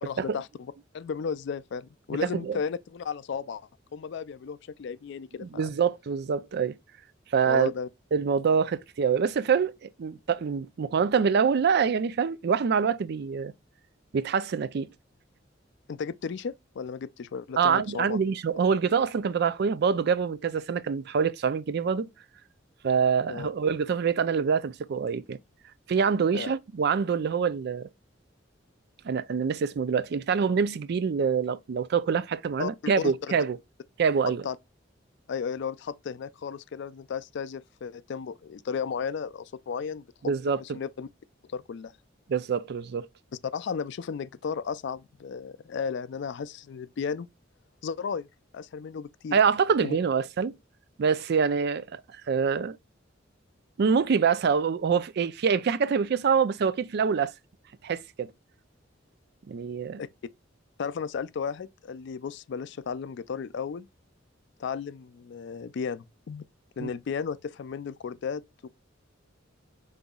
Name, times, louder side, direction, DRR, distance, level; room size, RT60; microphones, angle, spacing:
voice 1, 0.0-5.7 7.4-7.9 15.9-18.2 23.3-23.5 26.3-26.5 32.6-32.7 33.0-33.4 34.4-34.6 35.3-40.3 40.6-41.1 41.5-41.9 43.5-47.3 47.8-48.3 48.5-49.4 49.8-50.0 59.9-60.1 60.8-63.9 64.6-66.4 66.8-68.7, left 6 dB, 65° left, 0.4 m, -34 dB
voice 2, 5.4-6.8 7.3-7.7 8.1-13.5 14.1-14.9 17.6-22.1 22.8-25.4 25.9-27.9 29.0-33.6 34.0-34.4 40.2-40.8 42.3-43.1 49.3-50.5 51.0-52.0 52.3-52.8 53.8-57.3 57.8-58.3 59.5-60.0 66.8-66.9, right 6 dB, 60° right, 0.4 m, -25 dB
5.4 x 3.9 x 2.2 m
head